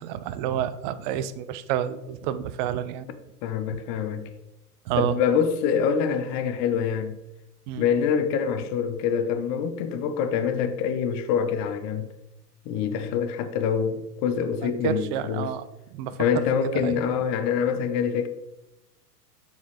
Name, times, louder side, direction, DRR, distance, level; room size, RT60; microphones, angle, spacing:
voice 1, 0.0-3.1 4.9-5.1 7.7-7.9 14.6-16.2 16.8-17.0, right 10 dB, 35° right, 0.4 m, -29 dB
voice 2, 3.4-4.2 5.0-7.2 7.8-12.1 12.6-15.5 16.2-18.3, left 7 dB, 35° left, 0.8 m, -25 dB
7.4 x 4.0 x 4.8 m
hypercardioid pair, 115°, 47 cm